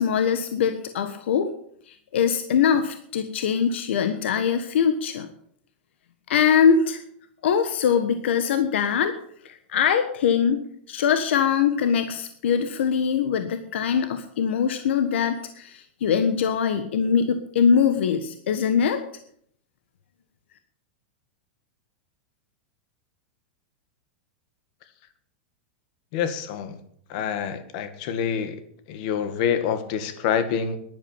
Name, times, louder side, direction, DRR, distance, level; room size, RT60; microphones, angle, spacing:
voice 1, 0.0-1.5 1.9-5.3 6.3-7.0 7.4-9.1 9.4-10.6 10.9-19.0, left 7 dB, 80° left, 9 dB, 1.4 m, -22 dB
voice 2, 26.1-26.8 27.1-28.6 28.9-30.8, left 8 dB, 45° left, 11 dB, 1.9 m, -26 dB
11.0 x 11.0 x 9.0 m, 0.65 s
supercardioid pair, 165°, 6 cm